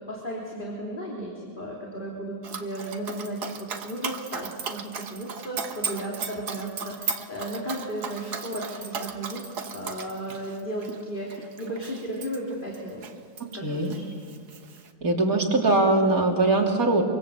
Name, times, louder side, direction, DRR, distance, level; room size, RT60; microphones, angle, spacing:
voice 1, 0.1-13.0 13.5-14.0, right 1 dB, 30° left, -3 dB, 3.4 m, -35 dB
Dog, 2.4-13.5 13.8-14.9, right 5 dB, 90° right, 2.0 m, -36 dB
voice 2, 13.4-14.0 15.0-17.0, right 2 dB, 60° right, 0 dB, 3.5 m, -22 dB
26.0 x 25.0 x 8.1 m, 2.1 s
omnidirectional pair, 1.7 m